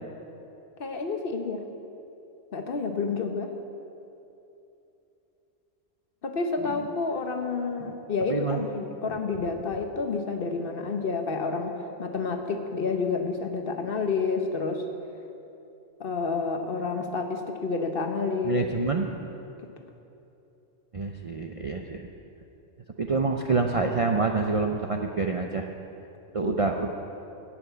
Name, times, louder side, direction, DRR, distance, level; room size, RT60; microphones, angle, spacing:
voice 1, 0.8-1.6 2.5-3.5 6.2-14.8 16.0-18.7 26.4-26.7, left 4 dB, 50° left, 5 dB, 1.0 m, -29 dB
voice 2, 8.3-8.6 18.4-19.1 20.9-22.0 23.0-25.7 26.3-26.9, right 4 dB, 45° right, 3 dB, 0.4 m, -27 dB
14.0 x 6.1 x 9.1 m, 2.9 s
omnidirectional pair, 1.3 m